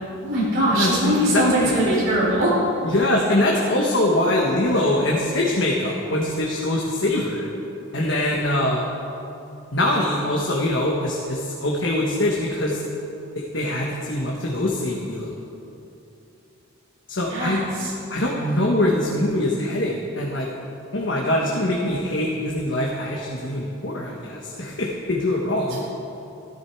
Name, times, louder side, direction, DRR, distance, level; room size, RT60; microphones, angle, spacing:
voice 1, 0.2-2.5 17.3-17.9, equal, 70° right, -7 dB, 3.8 m, -21 dB
voice 2, 0.7-1.8 2.8-7.5 7.9-8.9 9.7-12.8 13.3-15.3 17.1-17.6 18.1-20.5 20.9-25.8, left 1 dB, 60° left, -2 dB, 1.3 m, -23 dB
13.5 x 13.5 x 4.6 m, 2.9 s
head